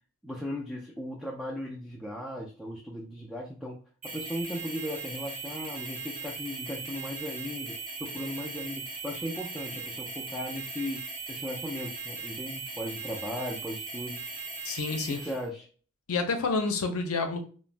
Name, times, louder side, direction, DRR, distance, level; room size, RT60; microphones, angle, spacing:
voice 1, 0.2-3.8 4.1-11.0 11.3-14.2 15.1-15.6, equal, ahead, -3 dB, 0.3 m, -37 dB
sound 1, 4.0-15.4, right 4 dB, 35° right, 1.0 m, -39 dB
voice 2, 14.6-15.2 16.1-17.4, left 4 dB, 70° left, 6 dB, 0.5 m, -29 dB
3.1 x 2.1 x 2.5 m, 0.40 s
head